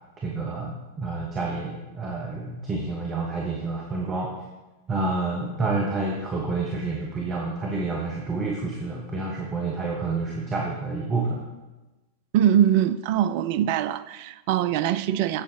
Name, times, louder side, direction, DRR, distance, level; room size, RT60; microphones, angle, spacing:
voice 1, 0.2-4.3 4.9-11.4, right 3 dB, 25° right, -1 dB, 1.2 m, -29 dB
voice 2, 12.3-15.4, right 10 dB, 45° right, 14 dB, 0.4 m, -22 dB
7.9 x 7.6 x 4.5 m, 1.1 s
figure-of-eight pair, 90°, 0 cm